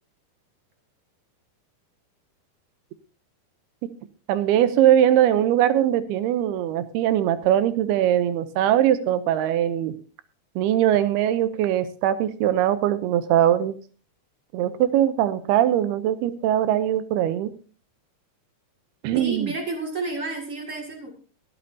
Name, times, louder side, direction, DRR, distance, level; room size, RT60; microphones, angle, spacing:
voice 1, 4.3-9.9 10.6-13.8 14.5-17.5 19.0-19.5, right 11 dB, 85° right, 13 dB, 2.7 m, -21 dB
voice 2, 19.1-21.1, right 3 dB, 25° right, 1 dB, 1.7 m, -31 dB
22.5 x 8.7 x 2.7 m, 0.39 s
omnidirectional pair, 4.5 m